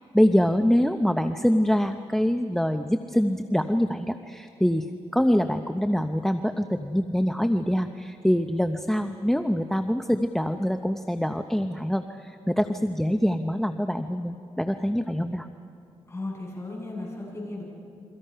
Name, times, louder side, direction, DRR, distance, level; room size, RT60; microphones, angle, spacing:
voice 1, 0.0-4.8 5.1-15.5, equal, 5° left, 7 dB, 0.7 m, -24 dB
voice 2, 16.1-17.6, left 2 dB, 25° left, -3 dB, 7.9 m, -35 dB
30.0 x 24.0 x 5.6 m, 2.5 s
wide cardioid pair, 110°, 11 cm